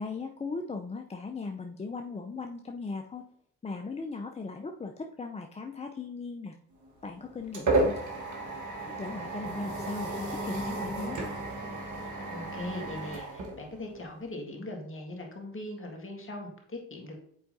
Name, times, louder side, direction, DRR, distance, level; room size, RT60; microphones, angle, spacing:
voice 1, 0.0-3.3 3.6-6.6 7.0-8.0 9.0-11.2, left 4 dB, 20° left, 4 dB, 0.5 m, -38 dB
sound 1, 6.8-14.2, right 2 dB, 55° right, 1.5 m, -33 dB
voice 2, 12.3-17.2, left 1 dB, 35° left, 1 dB, 1.8 m, -40 dB
7.7 x 4.6 x 2.7 m, 0.66 s
hypercardioid pair, 45°, 37 cm